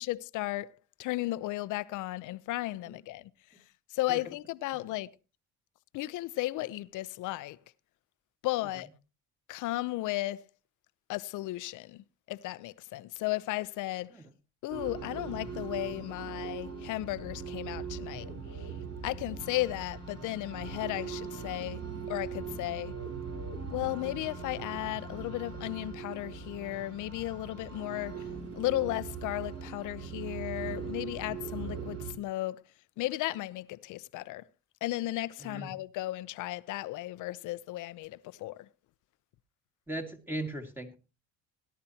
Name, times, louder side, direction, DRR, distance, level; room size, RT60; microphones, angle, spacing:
voice 1, 0.0-3.3 3.9-5.1 5.9-7.6 8.4-8.9 9.5-10.5 11.1-14.2 14.6-18.7 19.0-21.8 22.1-22.9 23.7-28.3 28.5-32.6 33.0-34.5 34.8-38.7, left 17 dB, 65° left, 0.7 m, -35 dB
sound 1, 14.7-32.1, right 5 dB, 45° right, 4.6 m, -40 dB
voice 2, 39.9-41.0, right 1 dB, 5° right, 2.1 m, -37 dB
17.5 x 11.5 x 2.8 m
cardioid pair, 105°, 33 cm